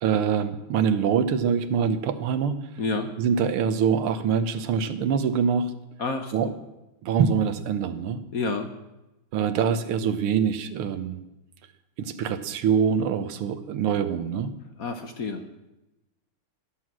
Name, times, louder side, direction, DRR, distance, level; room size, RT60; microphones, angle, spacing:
voice 1, 0.0-2.6 3.2-5.7 6.3-6.5 7.0-8.2 9.3-11.2 12.0-14.5, right 7 dB, 85° right, 11 dB, 1.8 m, -24 dB
voice 2, 2.8-3.1 6.0-6.5 8.3-8.7 14.8-15.4, left 3 dB, 50° left, 7 dB, 1.2 m, -29 dB
14.0 x 11.5 x 6.2 m, 0.96 s
omnidirectional pair, 2.4 m